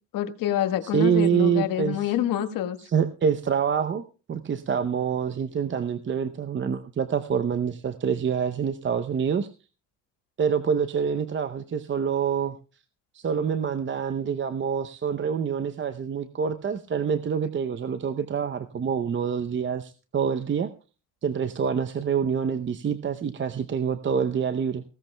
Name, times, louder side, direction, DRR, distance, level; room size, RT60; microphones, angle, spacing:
voice 1, 0.1-2.8, left 11 dB, 80° left, 9 dB, 1.5 m, -26 dB
voice 2, 0.8-2.1 2.8-4.0 4.3-9.5 10.4-12.6 13.1-20.7 21.2-24.8, right 7 dB, 35° right, 10 dB, 0.7 m, -26 dB
19.0 x 16.5 x 2.3 m, 0.33 s
cardioid pair, 90°, 33 cm